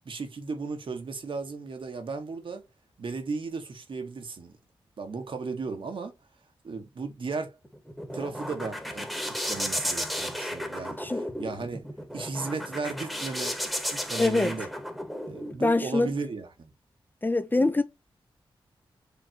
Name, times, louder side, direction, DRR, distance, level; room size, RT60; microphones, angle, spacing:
voice 1, 0.0-2.6 3.0-4.6 5.0-6.1 6.6-7.6 8.1-11.9 12.1-13.6 13.9-14.7 15.3-16.7, right 4 dB, 65° right, 1.4 m, -35 dB
sound 1, 7.6-15.6, equal, ahead, 1.3 m, -34 dB
voice 2, 14.2-14.5 15.6-16.1 17.2-17.8, left 2 dB, 20° left, 0.7 m, -24 dB
5.2 x 3.3 x 3.0 m
cardioid pair, 70°, 9 cm